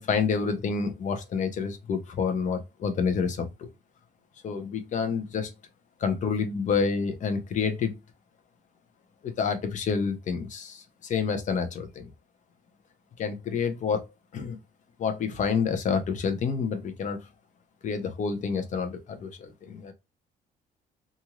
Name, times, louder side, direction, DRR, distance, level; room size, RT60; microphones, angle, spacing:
voice 1, 0.0-3.7 4.4-5.5 6.0-8.0 9.2-12.1 13.2-14.1 14.3-14.6 15.0-17.3 17.8-19.9, left 5 dB, 45° left, 0.8 m, -28 dB
3.0 x 2.6 x 2.3 m
cardioid pair, 110°, 17 cm